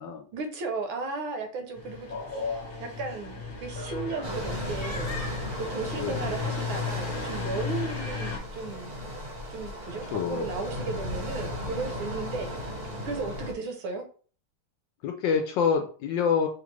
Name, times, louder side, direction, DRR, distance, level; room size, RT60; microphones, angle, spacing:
voice 1, 0.3-8.9 9.5-14.0, right 3 dB, 75° right, 4 dB, 1.5 m, -35 dB
sound 1, 1.7-8.4, left 4 dB, 35° left, 1.0 m, -35 dB
sound 2, 4.2-13.5, equal, 30° right, 0.8 m, -36 dB
voice 2, 10.1-10.5 15.0-16.5, left 6 dB, 75° left, 4 dB, 1.1 m, -26 dB
5.1 x 2.4 x 3.1 m, 0.41 s
omnidirectional pair, 2.4 m